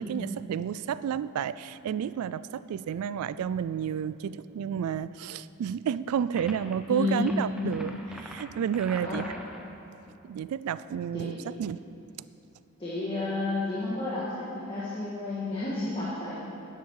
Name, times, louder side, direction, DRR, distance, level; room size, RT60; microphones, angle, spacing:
voice 1, 0.1-9.2 10.2-11.8, right 8 dB, 80° right, 16 dB, 0.3 m, -31 dB
sound 1, 6.4-6.7 7.2-9.7, equal, 5° right, 0.9 m, -44 dB
voice 2, 6.9-7.4 9.0-9.2 11.1-11.3 12.8-16.4, left 2 dB, 25° left, -8 dB, 1.8 m, -31 dB
11.5 x 10.5 x 4.8 m, 2.9 s
head